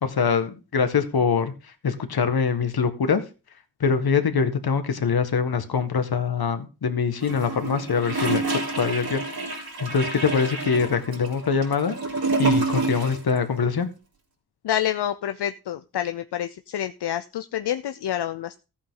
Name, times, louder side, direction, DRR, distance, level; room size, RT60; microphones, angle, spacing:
voice 1, 0.0-1.5 1.8-3.2 3.8-8.4 8.7-9.2 9.8-12.0 12.4-13.9, left 6 dB, 70° left, 9 dB, 1.9 m, -23 dB
Gurgling / Toilet flush, 7.2-13.3 13.5-13.6, right 3 dB, 65° right, 4.2 m, -28 dB
voice 2, 14.6-18.6, left 11 dB, 85° left, 9 dB, 0.7 m, -28 dB
14.5 x 8.4 x 3.9 m, 0.31 s
wide cardioid pair, 100°, 39 cm